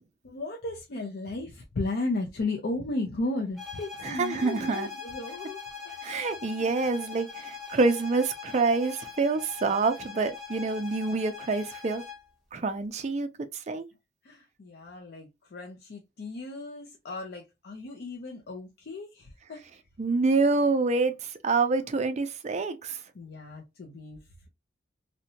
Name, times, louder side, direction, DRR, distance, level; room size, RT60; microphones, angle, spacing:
voice 1, 0.2-6.2 6.5-6.7 14.2-19.7 23.1-24.2, left 2 dB, 55° left, 0.5 m, -35 dB
sound 1, 3.6-12.3, left 6 dB, ahead, 0.7 m, -42 dB
voice 2, 4.0-4.9 6.0-12.0 12.5-13.3 13.5-13.9 20.0-23.0, right 3 dB, 35° right, 0.4 m, -27 dB
2.7 x 2.1 x 2.7 m
head